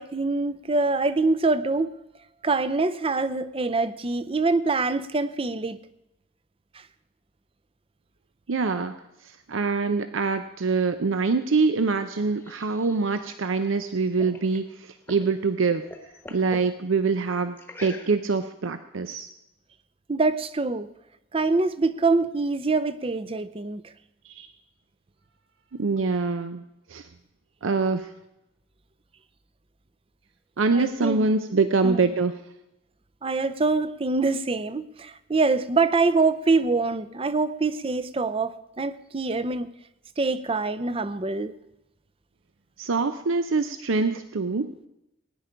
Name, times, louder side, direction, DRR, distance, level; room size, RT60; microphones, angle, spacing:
voice 1, 0.0-1.9 2.4-5.8 20.1-20.9 21.3-23.8 30.7-31.3 31.8-32.0 33.2-39.7 40.2-41.5, right 3 dB, 30° right, 14 dB, 0.5 m, -25 dB
voice 2, 8.5-9.0 9.5-15.9 16.3-17.6 17.8-19.3 24.2-24.5 25.7-26.6 26.9-27.0 27.6-28.1 30.6-32.4 42.8-44.7, right 4 dB, 90° right, 10 dB, 0.6 m, -24 dB
sound 1, 12.0-15.3 15.7-16.7 17.6-18.5, left 2 dB, 10° left, 1.0 m, -44 dB
18.0 x 9.9 x 5.1 m, 0.88 s
head